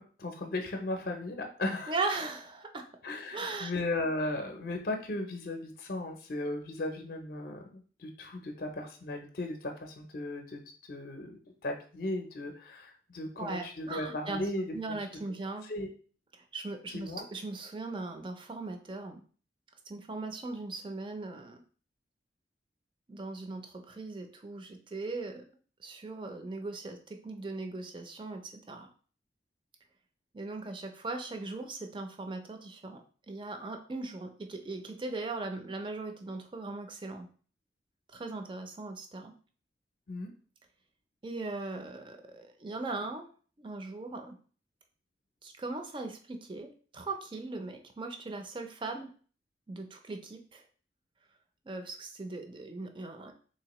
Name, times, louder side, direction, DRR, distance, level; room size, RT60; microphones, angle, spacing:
voice 1, 0.0-2.0 3.0-10.6 10.9-11.4 11.6-15.0 15.6-15.9 16.9-17.2 40.1-40.3, left 2 dB, 50° left, 3 dB, 0.5 m, -36 dB
voice 2, 1.9-2.9 3.3-3.7 13.4-14.4 14.7-15.6 16.5-19.2 19.9-21.6 23.1-25.4 25.8-28.9 30.3-33.0 33.3-37.3 38.1-39.3 41.2-43.3 43.6-44.4 45.4-49.1 49.7-50.6 51.7-53.3, right 3 dB, 25° right, 5 dB, 0.4 m, -39 dB
3.7 x 2.8 x 2.9 m, 0.42 s
head